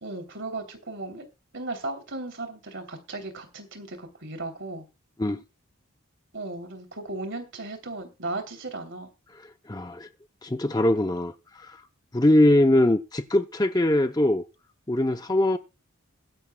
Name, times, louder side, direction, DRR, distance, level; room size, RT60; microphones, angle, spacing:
voice 1, 0.0-1.2 1.5-4.9 6.3-9.1, right 2 dB, 55° right, 3.1 m, -36 dB
voice 2, 9.7-10.1 10.4-11.8 12.1-14.4 14.9-15.6, left 1 dB, 15° left, 0.6 m, -22 dB
22.0 x 10.5 x 2.2 m
head